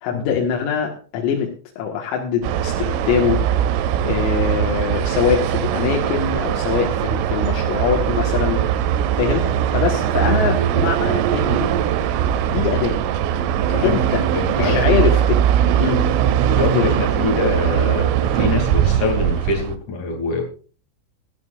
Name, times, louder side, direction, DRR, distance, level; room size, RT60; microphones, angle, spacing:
voice 1, 0.0-3.4 4.0-8.8 9.2-11.7 12.5-13.0 13.8-15.4 15.8-16.0 16.7-16.9, left 8 dB, 85° left, 0 dB, 4.3 m, -23 dB
sound 1, 2.4-19.7, right 10 dB, 85° right, 3.4 m, -20 dB
voice 2, 13.7-14.0 14.3-14.9 16.5-20.4, left 3 dB, 45° left, 2 dB, 3.6 m, -24 dB
17.5 x 12.5 x 2.5 m, 0.38 s
omnidirectional pair, 5.9 m